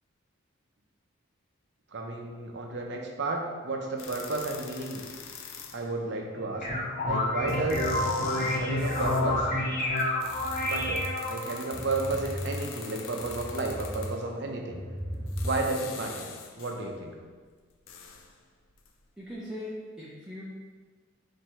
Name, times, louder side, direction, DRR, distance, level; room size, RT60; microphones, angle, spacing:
voice 1, 1.9-5.1 5.7-6.7 7.0-7.8 8.5-9.5 10.6-14.8 15.1-16.3 16.6-17.2, right 2 dB, 60° right, 2 dB, 0.6 m, -32 dB
sound 1, 4.0-6.0 7.1-7.2 7.5-9.3 10.0-14.3 15.1-16.9 17.3-19.0 19.3-19.4, left 6 dB, 80° left, 0.4 m, -45 dB
sound 2, 6.3-11.6, left 1 dB, 40° left, 0.9 m, -29 dB
sound 3, 7.4-9.5 9.9-11.0 11.4-14.0 14.3-15.8, equal, 25° left, 1.2 m, -39 dB
voice 2, 19.2-20.4, left 1 dB, 5° right, -7 dB, 0.5 m, -39 dB
4.5 x 2.6 x 4.3 m, 1.5 s
head